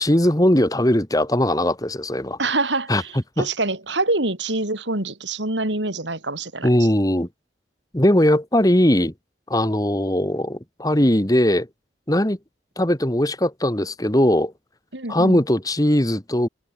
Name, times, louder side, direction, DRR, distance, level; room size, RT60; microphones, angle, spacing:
voice 1, 0.0-2.4 2.9-3.0 3.4-3.5 6.6-7.3 7.9-9.1 9.5-11.7 12.1-12.4 12.8-14.5 15.1-16.5, left 1 dB, 20° left, 2.0 m, -19 dB
voice 2, 2.4-6.7 14.9-15.4, right 2 dB, 75° right, 4.5 m, -25 dB
head